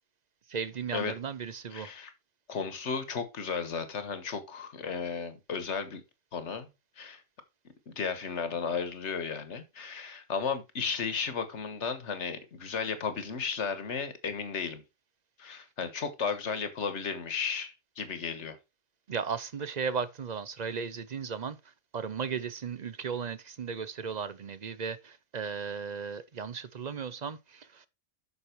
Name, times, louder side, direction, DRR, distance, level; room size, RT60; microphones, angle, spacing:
voice 1, 0.5-1.9 19.1-21.6 21.9-27.9, right 6 dB, 45° right, 0.6 m, -36 dB
voice 2, 1.7-2.1 2.5-6.0 6.3-6.7 7.0-7.2 7.9-14.8 15.4-18.6, left 5 dB, 65° left, 1.7 m, -34 dB
8.4 x 6.3 x 4.5 m
omnidirectional pair, 1.3 m